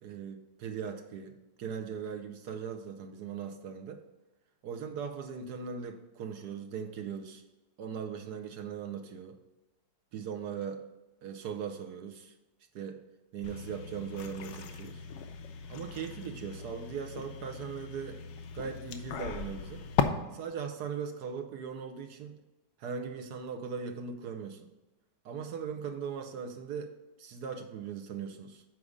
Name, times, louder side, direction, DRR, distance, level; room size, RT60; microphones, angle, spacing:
voice 1, 0.0-4.0 4.6-7.4 7.8-9.4 10.1-10.8 11.2-12.3 12.7-13.0 13.3-15.0 15.7-18.2 18.5-19.8 20.3-22.4 22.8-24.7 25.2-28.6, right 6 dB, 70° right, 5 dB, 1.2 m, -39 dB
sound 1, 13.4-20.0, left 8 dB, 90° left, 1.3 m, -37 dB
7.5 x 4.8 x 5.0 m, 1.0 s
omnidirectional pair, 1.9 m